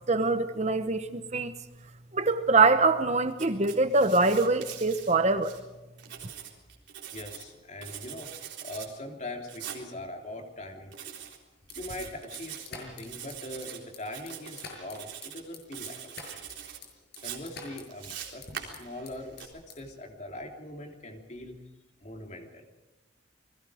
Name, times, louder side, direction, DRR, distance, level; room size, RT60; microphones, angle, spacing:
voice 1, 0.1-1.5 2.1-5.6, right 3 dB, 35° right, 1.0 m, -24 dB
Writing, 3.3-5.6 6.0-7.5 7.8-8.9 9.5-9.8 10.9-11.4 11.7-12.7 13.1-13.8 14.1-14.7 14.9-15.4 15.7-16.8 17.2-19.5, right 9 dB, 70° right, 3.8 m, -43 dB
voice 2, 7.1-8.3 8.6-11.2 11.8-16.5 17.2-21.6 22.0-22.7, left 1 dB, 40° left, 3.3 m, -42 dB
sound 1, 11.6-19.1 19.4-20.0, left 3 dB, 60° left, 6.5 m, -46 dB
29.0 x 21.5 x 5.1 m
head